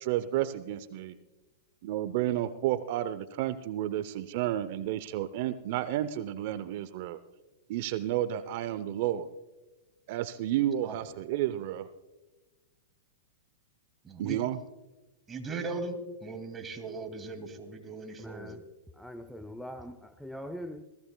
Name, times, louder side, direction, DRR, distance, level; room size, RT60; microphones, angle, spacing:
voice 1, 0.0-1.2 1.8-7.2 7.7-9.3 10.1-11.9 14.2-14.6, right 12 dB, 55° right, 13 dB, 0.6 m, -31 dB
voice 2, 14.0-14.4 15.3-18.6, right 3 dB, 20° right, 6 dB, 2.2 m, -38 dB
voice 3, 18.2-18.7 18.9-20.8, equal, ahead, 10 dB, 0.6 m, -42 dB
21.5 x 16.0 x 2.2 m, 1.1 s
hypercardioid pair, 115°, 0 cm